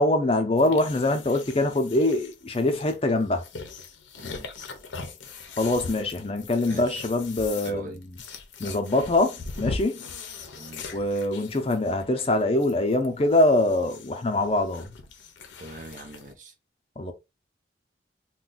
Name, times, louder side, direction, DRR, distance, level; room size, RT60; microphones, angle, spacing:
voice 1, 0.0-3.4 5.6-8.2 8.6-10.0 10.9-14.9 17.0-17.1, left 2 dB, 30° left, 0.5 m, -24 dB
sound 1, 0.6-16.3, left 4 dB, 90° left, 0.6 m, -40 dB
voice 2, 4.2-4.5 6.7-6.9 7.6-8.0 10.5-10.9 15.6-16.5, right 1 dB, 45° right, 0.7 m, -42 dB
2.5 x 2.2 x 3.9 m
head